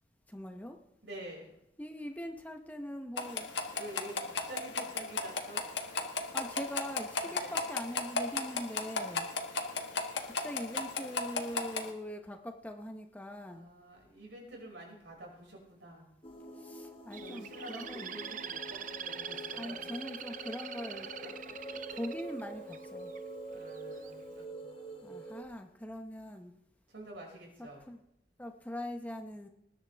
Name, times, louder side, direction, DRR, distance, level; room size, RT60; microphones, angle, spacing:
voice 1, 0.3-0.8 1.8-3.6 6.3-9.3 10.2-13.7 16.5-18.2 19.6-21.1 21.9-23.1 25.0-26.5 27.6-28.0 28.4-29.5, left 1 dB, 10° left, 4 dB, 0.9 m, -42 dB
voice 2, 1.0-1.6 3.7-5.6 7.2-7.5 13.5-16.1 17.2-19.9 21.2-22.0 23.5-25.2 26.9-27.8, right 1 dB, 70° right, -1 dB, 5.9 m, -48 dB
sound 1, 3.2-11.9, left 3 dB, 70° left, 1.5 m, -35 dB
sound 2, 16.2-25.4, right 1 dB, 30° left, 1.4 m, -46 dB
Bird, 17.1-23.2 23.7-24.1, right 8 dB, 45° right, 0.5 m, -43 dB
20.0 x 11.0 x 3.4 m, 0.79 s
head